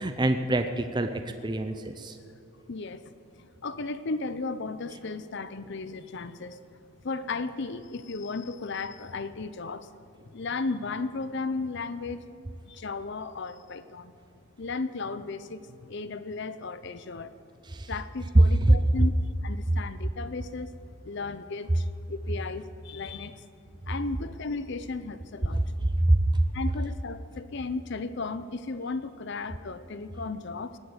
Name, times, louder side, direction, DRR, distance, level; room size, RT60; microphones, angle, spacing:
voice 1, 0.0-2.2 17.7-17.9 18.6-18.8 25.5-25.6 26.0-26.2, right 1 dB, 20° right, 8 dB, 0.6 m, -25 dB
voice 2, 2.7-6.6 7.0-9.9 10.3-12.3 12.7-14.1 14.6-17.3 17.9-19.1 19.4-20.7 21.0-23.4 23.9-25.6 26.5-30.8, left 3 dB, 50° left, 13 dB, 0.6 m, -35 dB
18.5 x 8.9 x 8.1 m, 2.9 s
head